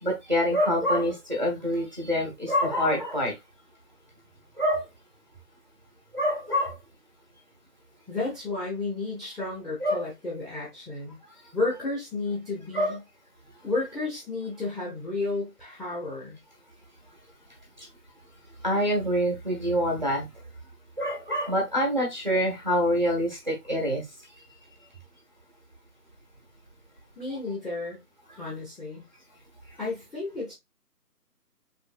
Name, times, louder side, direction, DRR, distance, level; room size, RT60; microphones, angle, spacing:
voice 1, 0.0-3.3 4.6-4.9 6.1-6.7 9.8-10.0 12.7-12.9 17.8-17.9 18.6-20.3 21.0-24.0, equal, 30° right, 1.0 m, -26 dB
voice 2, 8.1-11.2 11.5-13.0 13.6-16.4 27.2-28.0 28.3-29.0 29.8-30.5, left 3 dB, ahead, 0.7 m, -32 dB
4.2 x 3.0 x 2.4 m
figure-of-eight pair, 180°, 48 cm